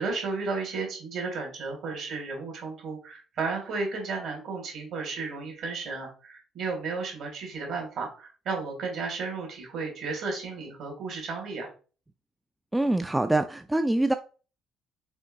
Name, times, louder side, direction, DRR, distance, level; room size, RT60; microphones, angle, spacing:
voice 1, 0.0-11.7, right 4 dB, 50° right, 2.1 m, -33 dB
voice 2, 12.7-14.1, right 1 dB, 10° right, 0.4 m, -24 dB
4.4 x 4.3 x 2.6 m
figure-of-eight pair, 50°, 0 cm